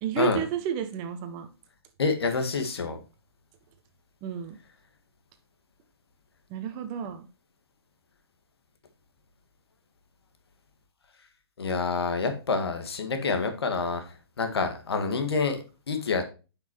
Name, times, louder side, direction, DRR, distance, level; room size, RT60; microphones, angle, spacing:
voice 1, 0.0-1.5 4.2-4.6 6.5-7.3, right 9 dB, 35° right, 9 dB, 1.2 m, -31 dB
voice 2, 2.0-3.0 11.6-16.2, left 4 dB, 80° left, 6 dB, 1.7 m, -28 dB
8.7 x 5.9 x 3.0 m, 0.32 s
hypercardioid pair, 130°, 13 cm